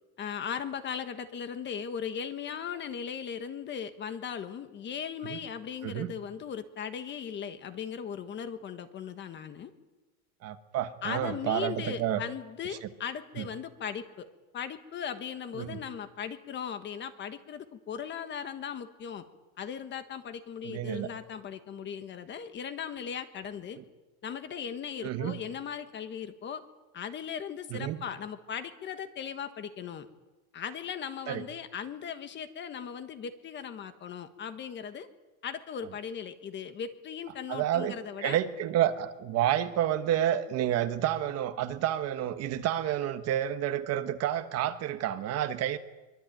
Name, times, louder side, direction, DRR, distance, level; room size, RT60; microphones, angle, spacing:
voice 1, 0.2-9.7 11.0-14.3 14.5-19.3 19.6-23.8 24.2-26.6 26.9-30.1 30.5-35.1 35.4-38.4, left 7 dB, 30° left, 10 dB, 1.4 m, -38 dB
voice 2, 10.4-12.2 13.4-13.5 15.5-15.8 20.6-21.1 25.0-25.4 27.7-28.0 31.3-31.4 37.5-45.8, right 11 dB, 40° right, 10 dB, 1.3 m, -30 dB
24.5 x 23.0 x 9.2 m, 1.1 s
cardioid pair, 180°, 40 cm